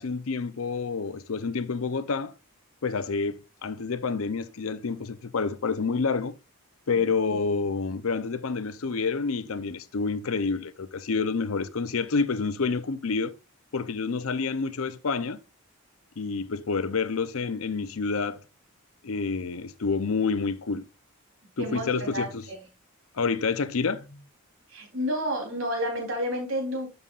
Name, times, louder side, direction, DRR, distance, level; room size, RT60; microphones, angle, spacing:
voice 1, 0.0-2.3 2.8-6.3 6.9-13.3 13.7-15.4 16.2-18.4 19.0-20.9 21.6-22.5 23.1-24.2, left 4 dB, 70° left, 0.6 m, -28 dB
voice 2, 21.6-22.5 24.7-26.9, equal, 60° right, 3.5 m, -30 dB
11.0 x 6.9 x 2.4 m
head